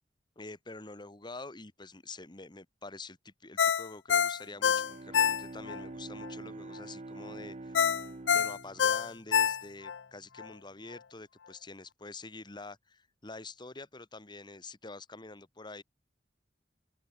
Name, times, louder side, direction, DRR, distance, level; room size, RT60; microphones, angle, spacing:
voice 1, 0.3-7.8 8.3-15.8, left 3 dB, 25° left, 1.5 m, -46 dB
Ringtone, 3.6-5.8 6.2-6.3 7.7-10.0 10.4-10.5, left 7 dB, 85° left, 0.5 m, -26 dB
Bowed string instrument, 4.5-10.1, right 2 dB, 35° right, 0.7 m, -46 dB
open air
head